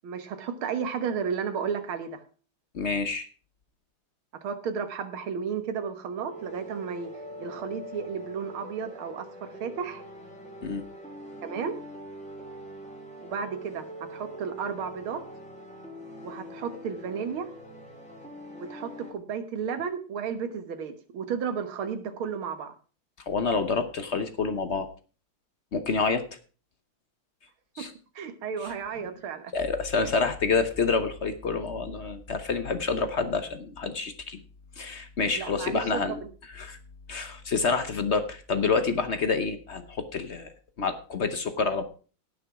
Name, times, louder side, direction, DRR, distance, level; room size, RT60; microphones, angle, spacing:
voice 1, 0.0-2.2 4.3-7.1 7.4-10.0 11.4-11.8 13.2-15.2 16.2-17.5 18.5-22.7 27.8-27.9 28.2-29.5 30.0-30.1 35.3-36.3, right 6 dB, 75° right, 9 dB, 2.2 m, -33 dB
voice 2, 2.7-3.3 10.6-10.8 23.3-24.9 25.7-26.2 27.7-27.9 28.6-28.7 29.5-34.4 34.8-36.2 36.5-36.8 37.1-40.5 40.8-41.8, left 4 dB, 50° left, 9 dB, 0.8 m, -28 dB
sound 1, 6.3-19.1, equal, 5° left, 2.6 m, -43 dB
17.5 x 6.2 x 4.8 m, 0.38 s
omnidirectional pair, 2.3 m